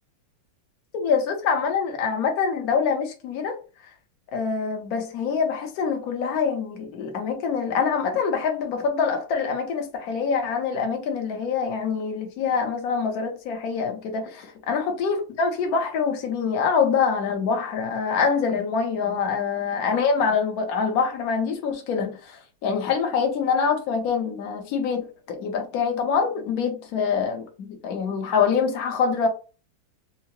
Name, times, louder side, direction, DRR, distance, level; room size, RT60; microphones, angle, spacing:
voice 1, 0.9-3.6 4.3-29.3, left 5 dB, 60° left, 1.0 m, -25 dB
4.7 x 2.0 x 2.9 m
omnidirectional pair, 2.4 m